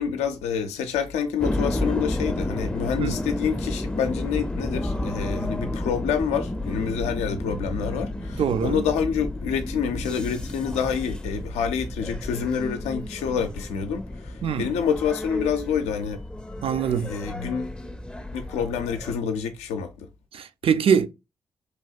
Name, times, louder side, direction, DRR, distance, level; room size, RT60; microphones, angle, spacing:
voice 1, 0.0-16.2 17.0-17.8 18.3-20.1, left 7 dB, 80° left, 0.4 m, -27 dB
sound 1, 1.4-19.2, left 1 dB, 10° left, 0.4 m, -31 dB
voice 2, 8.4-8.8 14.4-14.7 16.6-17.1 20.3-21.1, right 7 dB, 55° right, 0.4 m, -23 dB
3.3 x 2.7 x 2.3 m
hypercardioid pair, 40°, 11 cm